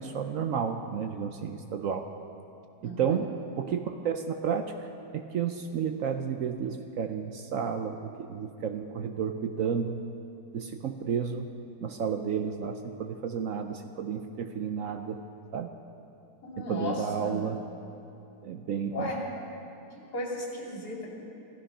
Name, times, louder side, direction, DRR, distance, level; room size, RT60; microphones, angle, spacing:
voice 1, 0.0-2.1 2.8-10.0 10.5-11.5 11.8-15.2 15.5-15.7 16.6-17.6 18.4-19.1, right 7 dB, 65° right, 6 dB, 0.8 m, -32 dB
voice 2, 16.4-17.4 18.9-19.2 20.1-21.2, left 1 dB, 60° left, -3 dB, 3.1 m, -35 dB
14.5 x 13.0 x 5.5 m, 2.8 s
omnidirectional pair, 1.9 m